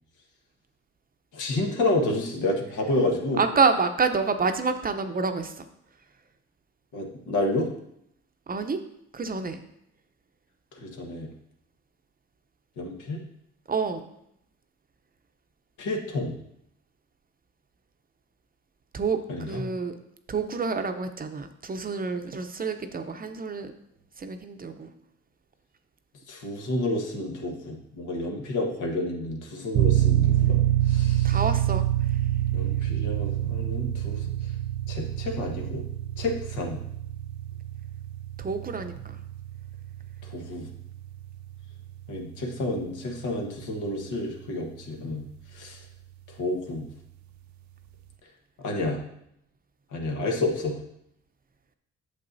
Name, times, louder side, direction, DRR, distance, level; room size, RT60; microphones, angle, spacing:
voice 1, 1.3-3.4 6.9-7.7 10.7-11.3 12.8-13.2 15.8-16.3 19.3-19.6 26.3-31.4 32.5-34.5 34.9-35.8 36.2-36.8 40.2-40.7 42.1-45.8 46.3-46.9 48.6-49.0 49.9-50.8, left 2 dB, 80° left, 1 dB, 1.4 m, -30 dB
voice 2, 3.4-5.6 8.5-8.8 9.1-9.6 13.7-14.1 18.9-20.0 20.3-23.7 24.2-24.9 31.2-31.9 38.4-39.2, right 4 dB, 30° right, 8 dB, 0.6 m, -28 dB
sound 1, 29.7-44.2, right 12 dB, 70° right, 0.5 m, -27 dB
8.6 x 6.7 x 2.7 m, 0.75 s
cardioid pair, 90°, 30 cm